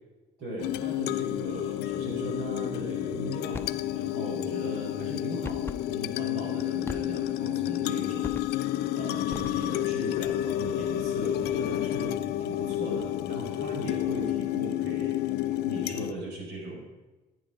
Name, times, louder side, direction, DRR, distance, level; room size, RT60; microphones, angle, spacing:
voice 1, 0.4-16.8, right 1 dB, 90° right, -2 dB, 5.1 m, -38 dB
sound 1, 0.6-16.1, left 13 dB, 75° left, 0.6 m, -30 dB
sound 2, 3.5-3.8 5.4-5.9 6.9-7.4 8.2-8.7 9.3-9.9, left 3 dB, 15° left, 0.7 m, -40 dB
14.0 x 9.3 x 5.1 m, 1.1 s
cardioid pair, 110°, 17 cm